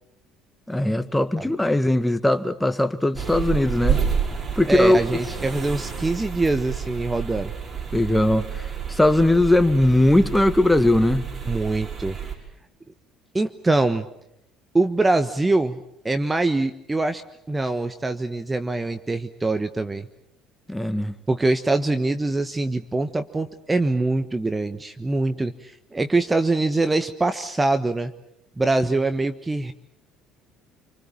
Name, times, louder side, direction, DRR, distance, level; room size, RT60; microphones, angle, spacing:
voice 1, 0.7-4.1 4.6-5.2 7.9-11.3 20.7-21.2, left 1 dB, 5° left, 1.9 m, -20 dB
sound 1, 3.1-12.3, right 7 dB, 35° right, 6.9 m, -29 dB
voice 2, 4.7-7.5 11.5-12.2 13.3-14.1 14.7-17.2 17.5-20.1 21.3-28.1 28.6-29.7, right 2 dB, 15° right, 1.3 m, -23 dB
27.5 x 25.5 x 7.3 m
hypercardioid pair, 60°, 0 cm